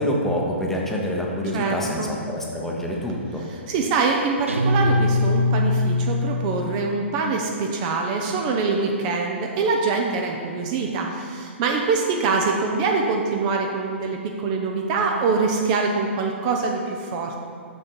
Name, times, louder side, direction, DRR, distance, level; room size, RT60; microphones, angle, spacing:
voice 1, 0.0-3.4, equal, 5° left, -2 dB, 0.9 m, -26 dB
voice 2, 1.5-2.1 3.5-17.4, right 4 dB, 35° right, 2 dB, 0.6 m, -24 dB
Guitar, 4.5-7.1, left 2 dB, 85° right, 0.7 m, -22 dB
6.3 x 6.3 x 4.4 m, 2.2 s
figure-of-eight pair, 120°, 7 cm